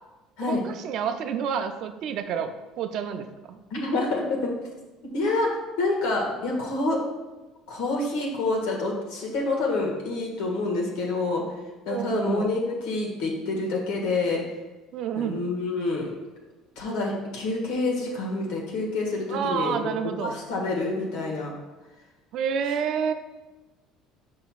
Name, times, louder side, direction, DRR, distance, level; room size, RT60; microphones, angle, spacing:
voice 1, 0.4-3.6 11.9-12.5 14.9-15.4 19.3-20.4 22.3-23.1, right 7 dB, 45° right, 8 dB, 0.4 m, -29 dB
voice 2, 3.7-4.5 5.1-5.5 5.8-7.0 7.7-11.4 11.8-14.4 15.1-16.1 16.8-19.8 20.2-21.5, left 2 dB, 75° left, 0 dB, 1.6 m, -27 dB
8.0 x 5.5 x 2.4 m, 1.1 s
cardioid pair, 170°, 0 cm